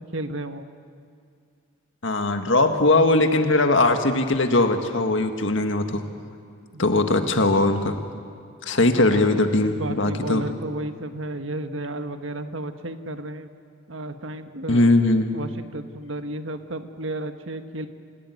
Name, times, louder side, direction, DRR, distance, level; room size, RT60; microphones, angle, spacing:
voice 1, 0.1-0.7 6.7-6.8 9.0-9.2 9.6-13.5 13.9-14.9 15.3-17.9, right 1 dB, 70° right, 8 dB, 1.4 m, -33 dB
voice 2, 2.0-6.0 6.8-8.0 8.6-10.4 14.7-15.3, left 2 dB, 65° left, 6 dB, 1.8 m, -20 dB
27.5 x 17.0 x 9.5 m, 2.4 s
head